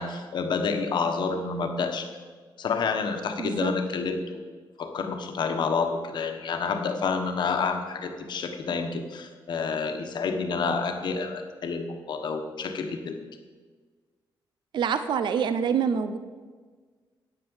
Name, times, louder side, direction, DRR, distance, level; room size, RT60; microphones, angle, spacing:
voice 1, 0.0-2.1 2.6-4.5 4.8-13.3, left 5 dB, 60° left, 5 dB, 1.2 m, -29 dB
voice 2, 3.4-3.7 14.7-16.2, right 7 dB, 60° right, 11 dB, 0.6 m, -26 dB
9.8 x 9.1 x 7.2 m, 1.5 s
wide cardioid pair, 175°, 9 cm